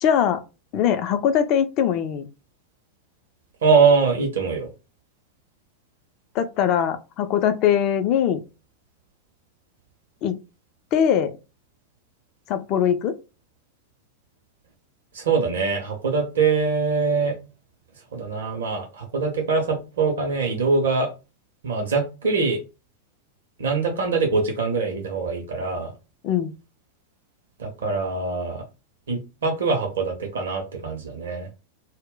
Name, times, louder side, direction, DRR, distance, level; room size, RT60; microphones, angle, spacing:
voice 1, 0.0-0.4 0.7-2.3 6.3-8.4 10.2-10.4 10.9-11.4 12.5-13.2 26.2-26.5, left 9 dB, 40° left, 0.4 m, -21 dB
voice 2, 3.6-4.7 15.1-17.4 18.1-21.1 21.6-22.6 23.6-25.9 27.6-28.6 29.1-31.5, right 4 dB, 65° right, 0.6 m, -23 dB
2.1 x 2.0 x 3.7 m
figure-of-eight pair, 90°, 0 cm